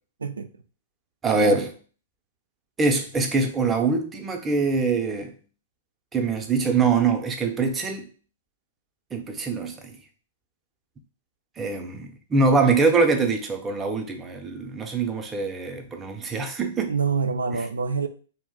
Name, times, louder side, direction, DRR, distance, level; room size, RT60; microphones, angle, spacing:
voice 1, 0.2-0.5 1.4-1.6 16.9-18.1, right 5 dB, 85° right, 0.3 m, -26 dB
voice 2, 1.2-1.7 2.8-5.3 6.1-8.1 9.1-9.9 11.6-16.9, right 4 dB, 20° right, 0.5 m, -23 dB
2.4 x 2.0 x 3.8 m
hypercardioid pair, 115°, 0 cm